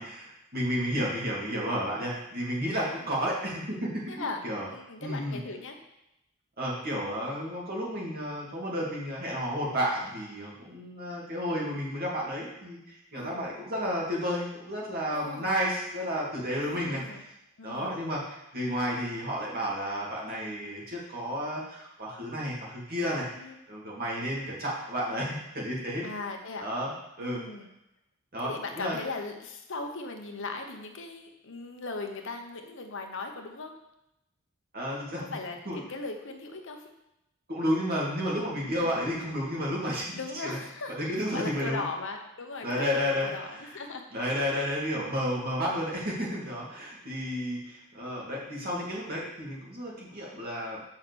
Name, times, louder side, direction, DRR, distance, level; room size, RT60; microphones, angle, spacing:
voice 1, 0.0-4.7 5.0-5.4 6.6-17.2 17.6-23.3 23.7-26.1 26.6-26.9 27.2-27.4 28.3-29.0 34.7-35.2 35.7-35.8 37.5-40.6 40.9-41.8 42.6-43.6 44.1-50.8, equal, 45° right, -4 dB, 2.6 m, -32 dB
voice 2, 4.1-4.4 4.7-5.8 13.1-13.4 15.1-15.5 16.5-17.2 17.6-18.1 23.3-23.6 26.0-26.6 27.2-27.7 28.4-33.7 35.2-36.9 38.8-39.0 40.1-44.0, left 3 dB, 65° left, 4 dB, 1.0 m, -38 dB
6.5 x 5.7 x 7.0 m, 0.88 s
head